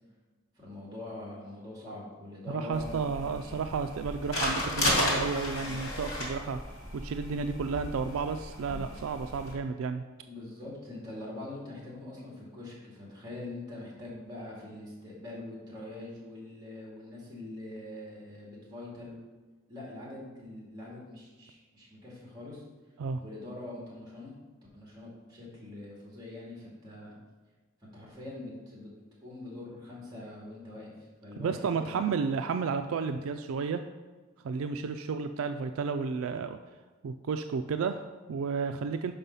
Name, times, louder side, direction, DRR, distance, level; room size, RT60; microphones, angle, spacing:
voice 1, 0.5-3.6 10.2-19.2 19.7-22.6 23.2-24.3 24.7-27.2 27.8-28.9 29.2-32.1, left 2 dB, 20° right, -4 dB, 2.3 m, -43 dB
voice 2, 2.5-6.6 6.9-10.0 23.0-23.2 31.4-33.8 34.4-36.6 37.0-39.1, right 5 dB, 70° right, 8 dB, 0.3 m, -32 dB
sound 1, 2.7-9.5, left 1 dB, 75° left, 2.2 m, -34 dB
5.6 x 5.4 x 5.5 m, 1.3 s
head